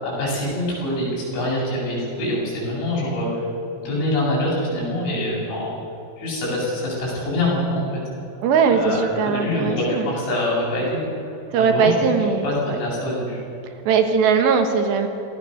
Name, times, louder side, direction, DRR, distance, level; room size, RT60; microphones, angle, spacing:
voice 1, 0.0-3.5 3.8-5.7 6.2-8.0 8.7-12.0 12.4-13.4, left 1 dB, 70° left, -5 dB, 9.8 m, -25 dB
voice 2, 8.4-10.1 11.5-12.8 13.9-15.1, right 5 dB, 70° right, 6 dB, 3.3 m, -19 dB
26.0 x 18.0 x 6.6 m, 2.9 s
omnidirectional pair, 5.4 m